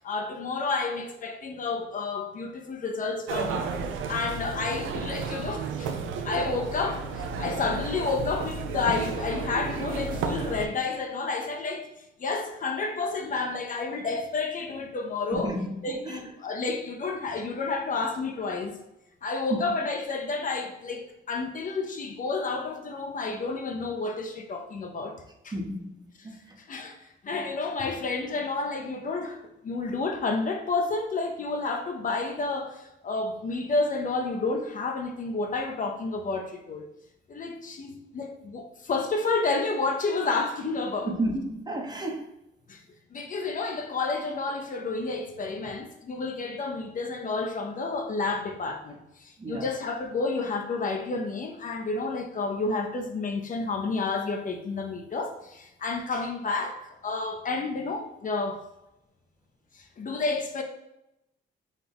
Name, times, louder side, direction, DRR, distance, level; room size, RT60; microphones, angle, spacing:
voice 1, 0.0-3.7 4.1-5.9 6.2-11.9 12.2-15.6 15.8-18.8 19.2-25.2 25.4-25.6 26.2-26.3 26.7-27.0 27.2-36.8 37.3-41.1 42.7-42.8 43.1-58.7 59.7-60.6, left 3 dB, 40° left, 0.6 m, -30 dB
sound 1, 3.3-10.7, right 5 dB, 75° right, 0.5 m, -32 dB
voice 2, 15.3-15.8 16.0-16.2 19.5-19.8 25.5-25.9 26.2-26.3 41.1-42.2 49.4-49.7, right 1 dB, 20° right, 0.7 m, -31 dB
4.0 x 2.8 x 3.4 m
cardioid pair, 90°, 20 cm